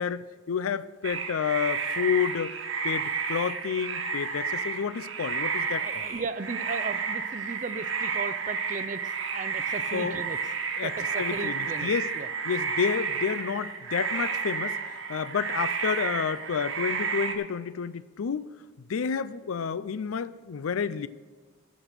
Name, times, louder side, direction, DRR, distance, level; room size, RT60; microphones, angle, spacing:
voice 1, 0.0-2.5 2.8-6.0 9.9-10.2 10.8-10.9 11.2-12.1 12.4-14.8 15.1-18.5 18.9-21.1, left 7 dB, 90° left, 0.4 m, -30 dB
sound 1, 1.0-17.3, right 5 dB, 65° right, 1.1 m, -31 dB
voice 2, 5.8-10.4 10.8-12.3, right 4 dB, 40° right, 0.5 m, -36 dB
15.0 x 5.3 x 5.9 m
head